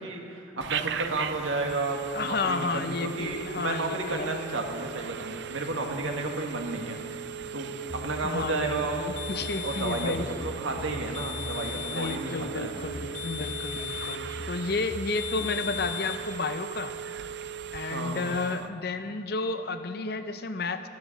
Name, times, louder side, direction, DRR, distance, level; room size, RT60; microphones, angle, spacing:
voice 1, 0.0-9.0 9.6-10.1 10.4-12.7 17.9-18.3, right 2 dB, 85° right, 2 dB, 1.7 m, -32 dB
Telephone, 0.6-18.7, right 8 dB, 60° right, 0.4 m, -38 dB
voice 2, 2.1-4.3 8.2-10.3 11.7-16.9 17.7-20.9, left 3 dB, 50° left, 10 dB, 0.6 m, -32 dB
sound 1, 7.9-16.1, left 1 dB, 25° left, 0.9 m, -42 dB
sound 2, 9.2-10.3 11.1-12.3 13.1-14.3 15.1-16.2, left 17 dB, 90° left, 1.6 m, -38 dB
12.5 x 10.5 x 7.2 m, 2.6 s
head